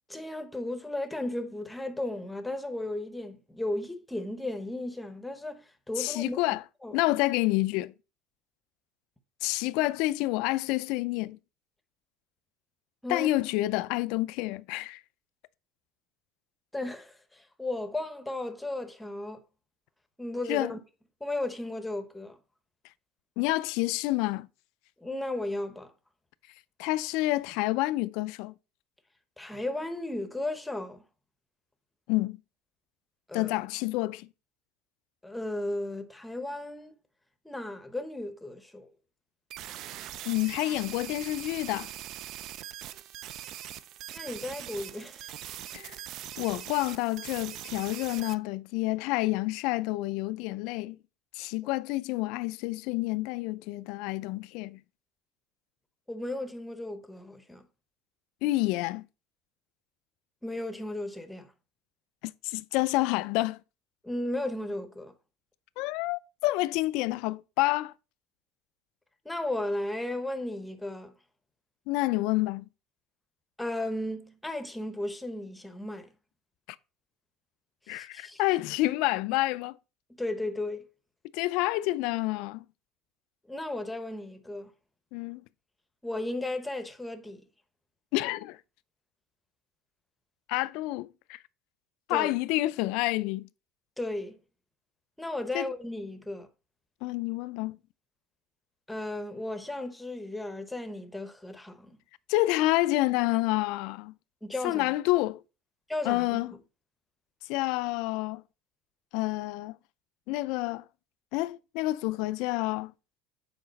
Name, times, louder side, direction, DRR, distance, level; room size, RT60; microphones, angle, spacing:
voice 1, 0.1-6.4 6.8-7.0 13.0-13.3 16.7-19.4 20.2-20.8 21.2-22.4 25.0-25.9 29.4-31.0 33.3-33.5 35.2-36.9 37.4-38.9 44.1-45.3 56.1-57.6 60.4-61.5 64.0-65.1 69.2-71.1 73.6-76.1 77.9-78.4 80.2-80.9 83.5-84.7 86.0-87.4 92.1-92.3 94.0-94.4 95.2-96.5 98.9-102.0 104.4-104.9 105.9-106.4, left 1 dB, 5° left, 0.8 m, -35 dB
voice 2, 6.0-6.6 6.9-7.9 9.4-11.4 13.1-15.0 20.5-20.7 23.4-24.5 26.8-28.5 32.1-32.4 33.3-34.3 40.2-41.9 45.7-46.0 46.4-51.0 51.3-54.8 58.4-59.1 62.2-63.6 65.8-67.9 71.9-72.7 77.9-79.8 81.3-82.6 85.1-85.4 88.1-88.6 90.5-91.4 92.1-93.5 95.5-95.7 97.0-97.8 102.3-104.1 104.6-105.4 106.0-106.5 107.5-108.4 109.1-109.8 110.3-110.8 111.3-112.9, left 19 dB, 70° left, 0.4 m, -28 dB
sound 1, 39.5-48.4, right 12 dB, 50° right, 0.4 m, -42 dB
7.7 x 4.8 x 4.0 m
cardioid pair, 160°, 0 cm